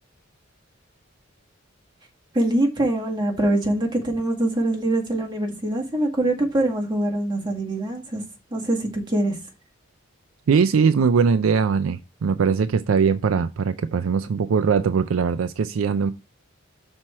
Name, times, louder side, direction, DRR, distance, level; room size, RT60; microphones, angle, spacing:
voice 1, 2.3-8.2 8.5-9.4, right 1 dB, 20° right, 1.8 m, -23 dB
voice 2, 10.5-16.1, right 6 dB, 85° right, 0.4 m, -21 dB
6.1 x 4.4 x 5.4 m
head